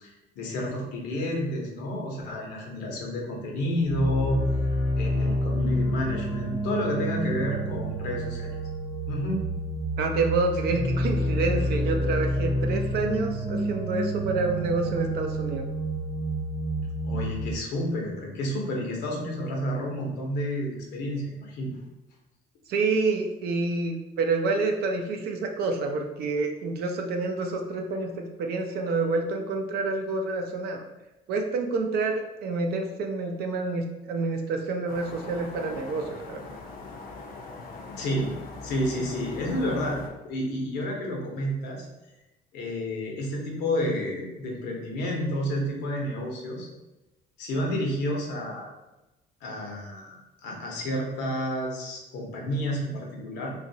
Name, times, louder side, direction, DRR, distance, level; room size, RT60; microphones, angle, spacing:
voice 1, 0.0-4.4 5.0-8.5 9.1-9.4 17.0-21.7 37.9-38.4 38.6-40.0 40.2-41.8 42.5-46.7 47.4-48.7 49.4-53.5, equal, 85° left, 0 dB, 0.8 m, -30 dB
sound 1, 3.8-17.5, equal, 15° left, 0.6 m, -28 dB
voice 2, 10.0-15.6 22.7-30.9 31.3-36.4, right 3 dB, 70° right, 3 dB, 0.5 m, -28 dB
sound 2, 34.9-40.1, left 3 dB, 55° left, 0.5 m, -41 dB
2.9 x 2.4 x 2.7 m, 1.0 s
cardioid pair, 110°, 17 cm